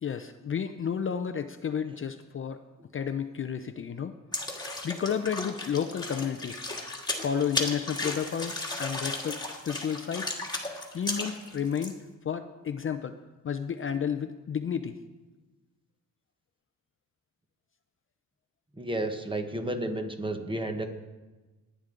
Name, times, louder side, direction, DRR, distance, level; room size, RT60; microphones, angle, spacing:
voice 1, 0.0-2.6 2.9-4.1 4.8-6.6 7.2-10.4 10.6-12.0 12.2-13.1 13.4-15.0, left 7 dB, 35° left, 8 dB, 0.5 m, -31 dB
sound 1, 4.3-11.9, left 2 dB, 10° left, 1.6 m, -35 dB
voice 2, 18.8-20.9, right 1 dB, 15° right, 6 dB, 1.0 m, -32 dB
19.5 x 9.3 x 3.8 m, 1.2 s
wide cardioid pair, 150°, 35 cm